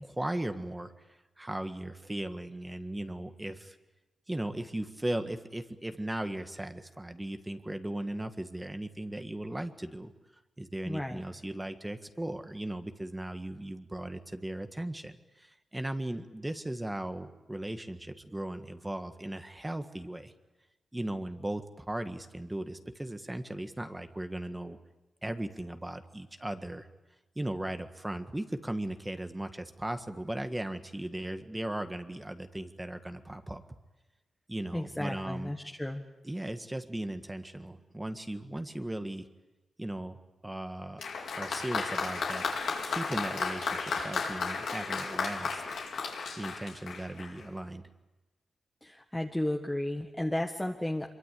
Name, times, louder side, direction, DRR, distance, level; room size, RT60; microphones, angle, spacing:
voice 1, 0.0-3.8 4.3-10.1 10.6-20.3 20.9-24.8 25.2-26.9 27.4-33.6 34.5-35.5 36.2-39.3 39.8-40.2 40.4-41.0 41.4-42.4 42.9-45.6 46.4-47.8, right 1 dB, 15° right, 8 dB, 1.7 m, -37 dB
voice 2, 10.9-11.2 34.7-36.0 48.8-51.1, left 1 dB, 10° left, 2 dB, 1.6 m, -33 dB
Applause, 41.0-47.4, left 5 dB, 85° left, 4.3 m, -34 dB
25.0 x 23.0 x 8.5 m, 1.1 s
cardioid pair, 80°, 0 cm